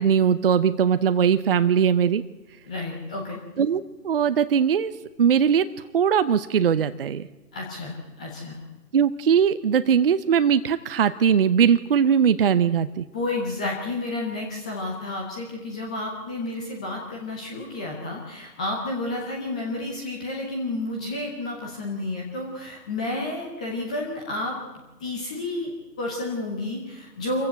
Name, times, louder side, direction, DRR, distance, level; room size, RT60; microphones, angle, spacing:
voice 1, 0.0-2.2 3.6-4.9 5.2-5.7 5.9-7.3 8.9-13.0, right 7 dB, 35° right, 12 dB, 0.7 m, -20 dB
voice 2, 2.7-3.4 7.5-8.6 13.1-24.6 25.0-25.7 26.0-27.5, left 2 dB, 5° left, 0 dB, 0.6 m, -31 dB
26.0 x 15.5 x 7.9 m, 1.1 s
figure-of-eight pair, 145°, 50 cm